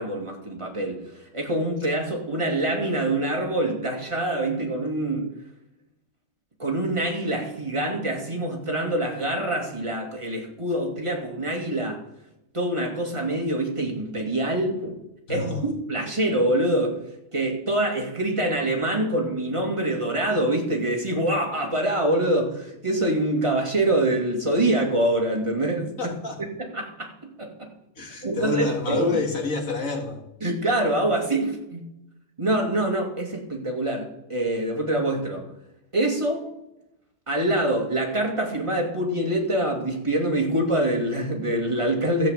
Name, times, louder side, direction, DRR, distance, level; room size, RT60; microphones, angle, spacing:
voice 1, 0.0-5.3 6.6-12.0 12.5-15.0 15.3-17.0 17.3-26.1 26.6-27.7 28.2-29.2 30.4-31.9 32.4-35.5 35.9-36.5 37.3-42.3, right 1 dB, 20° right, 0 dB, 2.6 m, -25 dB
voice 2, 15.3-15.6 26.0-26.4 28.0-30.3, left 3 dB, 75° left, 3 dB, 2.4 m, -28 dB
13.5 x 6.1 x 8.3 m, 0.87 s
omnidirectional pair, 1.4 m